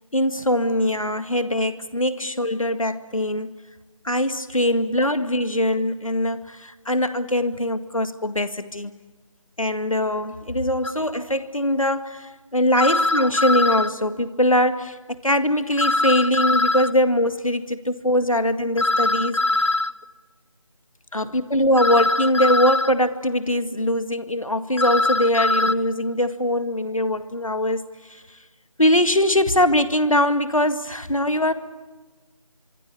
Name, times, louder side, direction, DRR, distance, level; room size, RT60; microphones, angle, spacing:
voice 1, 0.1-3.5 4.0-8.9 9.6-15.0 15.2-19.7 21.1-27.8 28.1-28.2 28.8-31.5, left 1 dB, 80° left, 1.9 m, -22 dB
sound 1, 10.8-10.9 12.8-13.9 15.8-16.9 18.8-19.9 21.8-22.9 24.8-25.7, left 2 dB, 60° left, 0.8 m, -22 dB
24.5 x 24.0 x 8.6 m
figure-of-eight pair, 165°, 17 cm